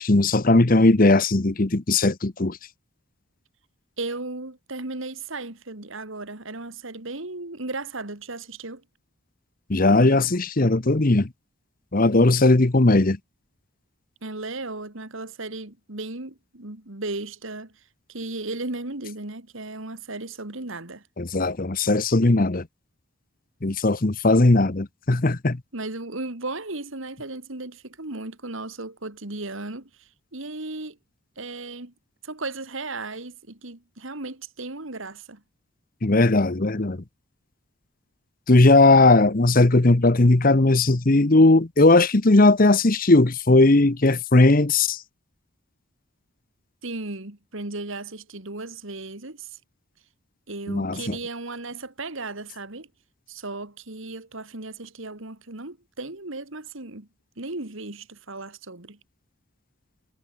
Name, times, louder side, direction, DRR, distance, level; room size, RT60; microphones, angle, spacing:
voice 1, 0.0-2.6 9.7-11.3 11.9-13.2 21.2-22.6 23.6-25.6 36.0-37.0 38.5-45.0 50.7-51.2, left 2 dB, 40° left, 1.0 m, -18 dB
voice 2, 4.0-8.8 14.2-17.8 18.1-21.0 25.7-31.0 31.4-31.9 32.2-35.4 46.8-49.6 50.5-52.9 53.3-57.1 57.4-59.0, right 2 dB, 65° right, 2.4 m, -35 dB
head